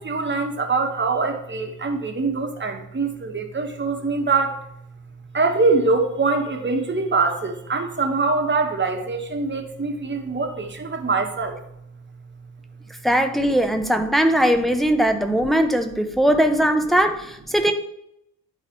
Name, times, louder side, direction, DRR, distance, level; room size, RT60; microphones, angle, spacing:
voice 1, 0.0-4.6 5.3-11.6, right 3 dB, 25° right, 3 dB, 1.3 m, -23 dB
voice 2, 13.0-17.7, equal, ahead, 5 dB, 0.8 m, -20 dB
10.5 x 4.0 x 3.0 m, 0.79 s
figure-of-eight pair, 45°, 46 cm